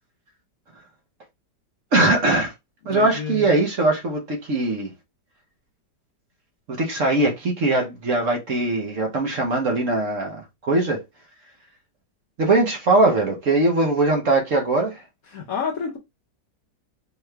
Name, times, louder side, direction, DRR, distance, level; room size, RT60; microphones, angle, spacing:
voice 1, 1.9-2.5 2.8-4.9 6.8-11.0 12.4-15.0, right 2 dB, 55° right, 1.1 m, -21 dB
voice 2, 2.9-3.5 15.3-16.0, left 6 dB, 60° left, 1.1 m, -29 dB
4.7 x 2.3 x 3.2 m
omnidirectional pair, 1.9 m